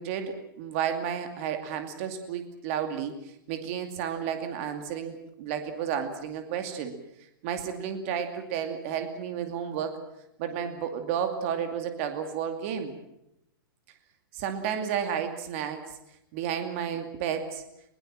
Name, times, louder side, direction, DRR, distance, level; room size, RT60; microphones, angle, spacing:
voice 1, 0.0-3.1 3.5-6.9 7.4-10.0 10.4-12.9 14.3-15.9 16.3-17.6, right 8 dB, 35° right, 6 dB, 2.4 m, -32 dB
21.5 x 21.5 x 7.5 m, 0.83 s
hypercardioid pair, 170°, 12 cm